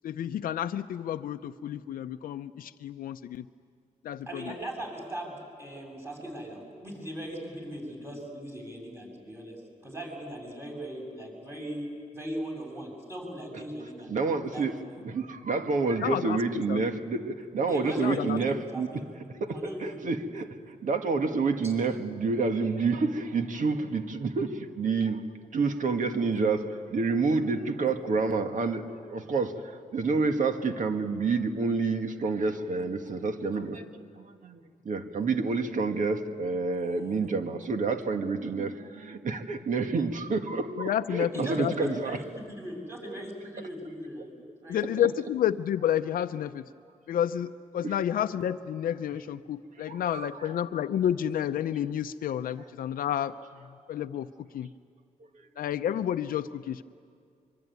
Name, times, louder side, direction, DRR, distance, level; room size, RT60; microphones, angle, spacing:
voice 1, 0.0-3.4 4.0-4.4 16.0-16.8 18.0-18.4 40.8-41.9 44.7-46.6 47.1-53.3 53.9-54.7 55.6-56.8, left 10 dB, 90° left, 8 dB, 0.6 m, -30 dB
voice 2, 4.3-14.1 14.5-14.7 17.7-19.0 19.5-20.0 21.6-21.7 41.3-44.3 44.6-44.8, right 1 dB, 15° right, 0 dB, 7.6 m, -39 dB
voice 3, 13.8-14.8 15.0-19.1 19.4-25.3 25.5-33.9 34.2-34.6 34.9-42.2 45.0-45.1 47.8-48.0 49.9-50.5, right 4 dB, 65° right, 6 dB, 1.8 m, -29 dB
24.5 x 24.0 x 9.4 m, 2.3 s
cardioid pair, 105°, 14 cm